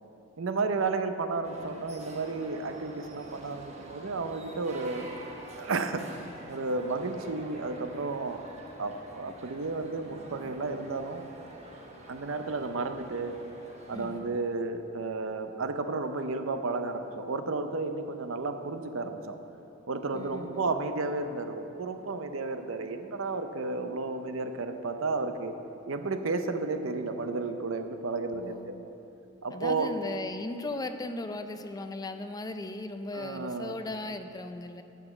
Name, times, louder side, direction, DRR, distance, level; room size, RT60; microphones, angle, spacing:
voice 1, 0.4-5.1 5.5-6.1 6.5-8.4 8.8-11.3 12.1-13.4 13.9-19.4 19.9-25.6 25.9-28.9 29.4-29.9 33.1-33.8, right 3 dB, 80° right, 8 dB, 0.6 m, -32 dB
sound 1, 1.4-14.2, right 1 dB, 35° right, 1.0 m, -47 dB
voice 2, 13.9-14.4 20.1-20.7 28.3-28.8 29.5-34.8, left 2 dB, 20° left, 8 dB, 0.4 m, -37 dB
9.2 x 6.0 x 7.9 m, 2.9 s
head